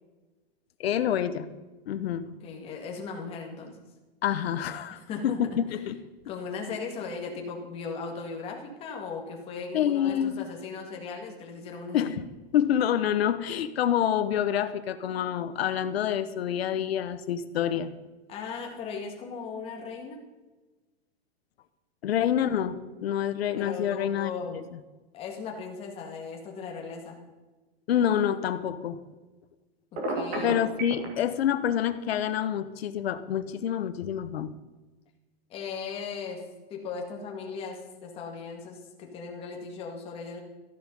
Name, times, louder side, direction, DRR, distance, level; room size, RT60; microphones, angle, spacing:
voice 1, 0.8-1.5 1.9-2.3 4.2-6.0 9.7-10.5 11.9-12.2 12.5-17.9 22.0-24.8 27.9-29.0 30.4-34.5, left 10 dB, 80° left, 11 dB, 1.2 m, -27 dB
voice 2, 2.4-3.8 4.9-5.8 6.3-12.2 18.3-20.2 23.6-24.6 25.1-27.2 30.1-30.6 35.5-36.4 36.7-40.4, left 5 dB, 20° left, 1 dB, 2.0 m, -37 dB
Telephone, 30.0-31.1, right 2 dB, 25° right, 2.7 m, -30 dB
14.0 x 11.0 x 5.4 m, 1.2 s
supercardioid pair, 175°, 31 cm